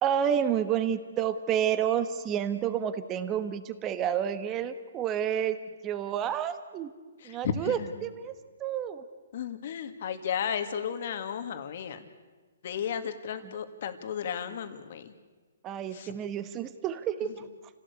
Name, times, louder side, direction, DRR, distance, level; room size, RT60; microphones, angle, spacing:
voice 1, 0.0-5.6 5.8-6.9 7.2-8.3 8.6-9.0 15.6-17.5, right 9 dB, 20° right, 11 dB, 1.3 m, -29 dB
voice 2, 7.2-8.1 9.3-12.1 12.6-15.1 15.9-16.1 17.2-17.4, left 8 dB, 50° left, 8 dB, 2.1 m, -34 dB
29.0 x 17.0 x 8.3 m, 1.4 s
hypercardioid pair, 165°, 0 cm